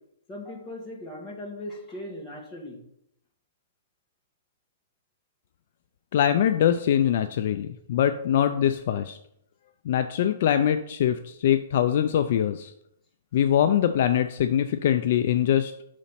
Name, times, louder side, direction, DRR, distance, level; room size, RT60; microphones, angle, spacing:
voice 1, 0.3-2.9, left 1 dB, 15° left, -3 dB, 1.6 m, -38 dB
voice 2, 6.1-9.2 9.9-12.7 13.3-15.7, left 10 dB, 55° left, 9 dB, 0.4 m, -23 dB
6.3 x 4.0 x 5.7 m, 0.73 s
hypercardioid pair, 160°, 0 cm